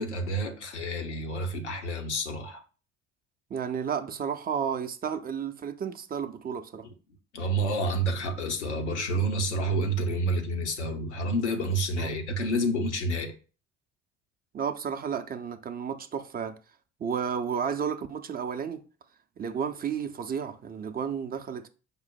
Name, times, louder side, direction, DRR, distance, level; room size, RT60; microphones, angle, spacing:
voice 1, 0.0-2.6 7.3-13.3, right 1 dB, 90° left, 0.7 m, -29 dB
voice 2, 3.5-6.9 12.0-12.1 14.5-16.6 17.0-18.8 19.4-21.7, right 7 dB, 25° right, 0.5 m, -32 dB
5.1 x 2.0 x 4.4 m
figure-of-eight pair, 55°, 34 cm